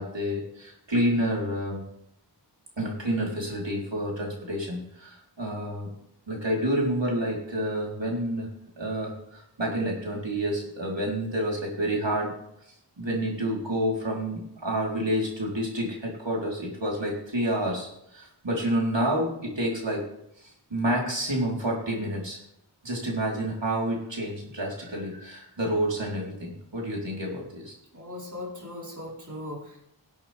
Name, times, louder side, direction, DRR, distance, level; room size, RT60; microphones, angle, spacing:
voice 1, 0.0-1.8 2.8-5.9 6.3-8.5 8.8-12.3 13.0-20.0 20.4-22.4 22.8-27.8, right 1 dB, 75° right, -3 dB, 3.9 m, -29 dB
voice 2, 27.9-29.9, left 1 dB, 40° right, -4 dB, 4.6 m, -39 dB
18.0 x 8.9 x 3.5 m, 0.77 s
wide cardioid pair, 55°, 44 cm